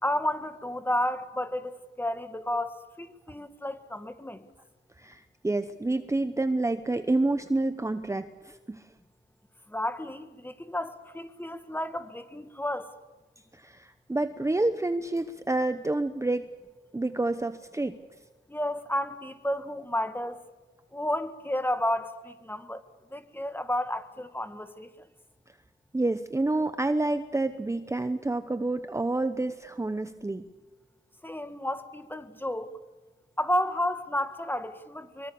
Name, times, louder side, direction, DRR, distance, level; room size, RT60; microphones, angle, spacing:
voice 1, 0.0-4.5 9.7-12.9 18.5-20.4 20.9-22.8 23.1-25.1 31.2-32.7 33.4-35.3, left 1 dB, 10° left, 1.7 m, -32 dB
voice 2, 5.0-8.8 13.5-16.5 16.9-18.0 25.9-30.4, right 2 dB, 15° right, 0.9 m, -28 dB
24.0 x 23.5 x 7.0 m
cardioid pair, 90°, 20 cm